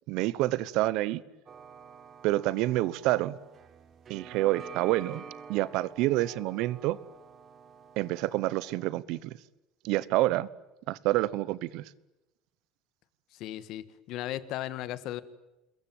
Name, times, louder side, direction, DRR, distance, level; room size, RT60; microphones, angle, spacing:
voice 1, 0.1-1.2 2.2-3.4 4.1-5.2 5.5-7.0 8.0-9.4 9.8-10.5 10.9-11.8, right 17 dB, 55° right, 1.0 m, -28 dB
sound 1, 1.5-8.7, right 6 dB, 25° right, 1.5 m, -49 dB
voice 2, 13.3-15.2, left 13 dB, 50° left, 1.7 m, -36 dB
27.5 x 22.0 x 9.3 m
cardioid pair, 175°, 0 cm